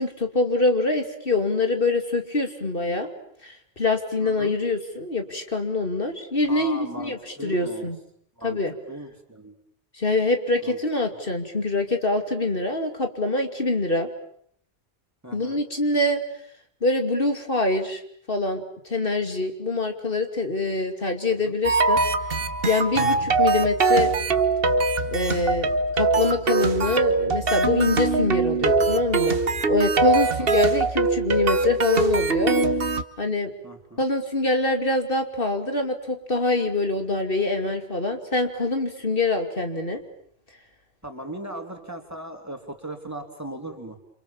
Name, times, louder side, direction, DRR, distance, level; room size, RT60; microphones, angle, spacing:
voice 1, 0.0-3.1 3.4-8.0 8.4-8.7 10.0-14.1 15.3-16.2 16.8-18.0 18.3-22.0 22.7-24.1 25.1-25.7 25.9-29.4 29.7-32.5 33.2-33.5 34.0-40.0, left 2 dB, 60° left, 5 dB, 2.9 m, -25 dB
voice 2, 4.2-4.6 6.4-7.9 8.4-8.6 8.9-9.6 10.6-10.8 15.2-15.6 21.4-21.6 23.0-23.3 30.2-30.5 33.6-34.0 41.0-44.0, right 1 dB, 15° right, 4 dB, 3.6 m, -38 dB
sound 1, 21.6-33.0, right 3 dB, 65° right, 1.6 m, -22 dB
29.0 x 27.5 x 7.3 m, 0.65 s
omnidirectional pair, 1.1 m